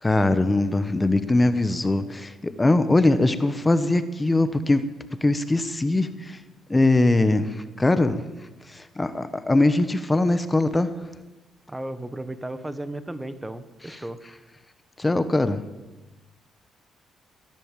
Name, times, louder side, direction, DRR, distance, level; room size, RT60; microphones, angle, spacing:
voice 1, 0.0-4.8 5.2-6.4 6.7-8.3 8.7-10.9 15.0-15.6, left 2 dB, 15° left, 12 dB, 1.0 m, -21 dB
voice 2, 11.7-14.2, right 1 dB, 10° right, 12 dB, 1.2 m, -34 dB
17.5 x 10.5 x 7.5 m, 1.1 s
cardioid pair, 90°, 0 cm